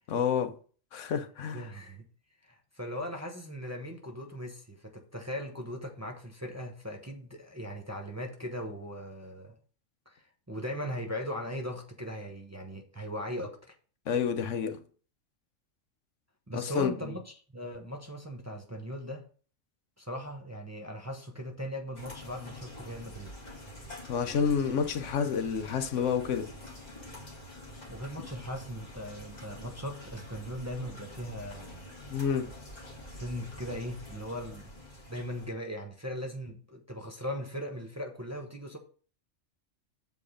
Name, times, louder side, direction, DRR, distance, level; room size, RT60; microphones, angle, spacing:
voice 1, 0.1-0.5 0.9-1.7 14.1-14.8 16.5-16.9 24.1-26.5 32.1-32.5, left 7 dB, 75° left, 1.1 m, -29 dB
voice 2, 1.5-2.1 2.4-9.6 10.1-13.7 16.5-19.2 20.0-23.3 27.9-31.9 33.1-34.7 35.1-38.8, equal, 15° right, 0.8 m, -39 dB
sound 1, 21.9-35.5, left 1 dB, 35° left, 1.9 m, -47 dB
7.2 x 4.7 x 5.0 m
omnidirectional pair, 1.3 m